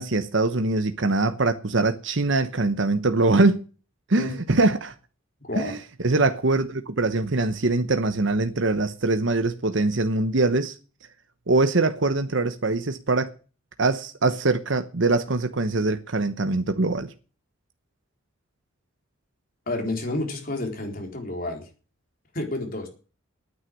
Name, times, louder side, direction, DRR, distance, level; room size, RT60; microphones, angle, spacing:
voice 1, 0.0-3.6 4.1-4.9 5.6-5.8 6.0-10.7 11.5-13.3 13.8-17.1, right 2 dB, 60° right, 1.0 m, -23 dB
voice 2, 5.4-5.7 19.7-21.7 22.3-22.9, left 2 dB, 45° left, 4.1 m, -30 dB
9.8 x 9.5 x 9.3 m
head